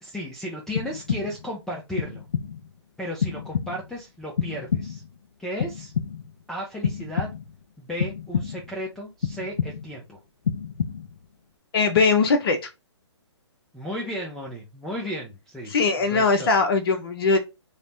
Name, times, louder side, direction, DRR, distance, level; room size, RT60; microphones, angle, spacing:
voice 1, 0.0-2.2 3.0-5.0 5.4-5.9 6.5-7.3 7.8-10.2 13.7-15.7 16.1-16.5, equal, 5° left, -2 dB, 0.4 m, -34 dB
sound 1, 0.8-1.5 2.0-2.7 3.2-4.0 4.4-5.2 5.6-6.4 6.8-7.6 8.0-8.8 9.2-10.0 10.4-11.3, left 7 dB, 85° left, 0.4 m, -29 dB
voice 2, 11.7-12.6 15.7-17.4, left 4 dB, 50° left, 6 dB, 0.7 m, -20 dB
3.2 x 2.0 x 2.7 m, 0.24 s
hypercardioid pair, 135°, 15 cm